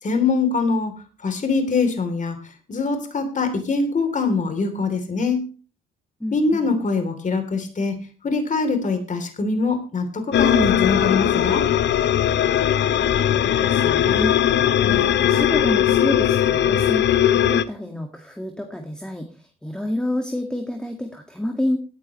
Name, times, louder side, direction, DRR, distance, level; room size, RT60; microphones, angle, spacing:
voice 1, 0.0-0.9 1.2-2.4 2.7-5.5 6.3-11.7, left 4 dB, 40° left, 7 dB, 3.2 m, -23 dB
voice 2, 6.2-6.7 13.0-14.5 14.8-21.8, left 1 dB, 5° left, 4 dB, 1.9 m, -29 dB
sound 1, 10.3-17.6, left 10 dB, 65° left, 0.8 m, -19 dB
17.5 x 9.9 x 3.1 m, 0.36 s
cardioid pair, 90°, 20 cm